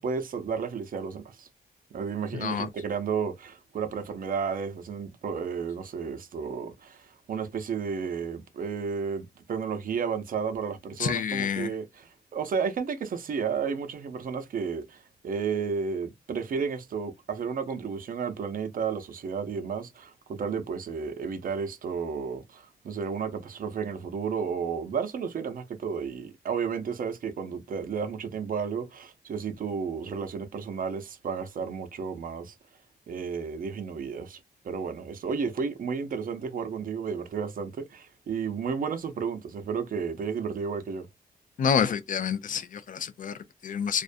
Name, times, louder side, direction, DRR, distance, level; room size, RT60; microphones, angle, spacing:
voice 1, 0.0-1.5 1.9-32.5 33.1-34.4 34.6-41.1, right 6 dB, 60° right, 0.5 m, -32 dB
voice 2, 2.3-2.7 11.0-11.7 41.6-44.0, left 7 dB, 55° left, 0.4 m, -28 dB
2.4 x 2.1 x 2.5 m
wide cardioid pair, 140°, 16 cm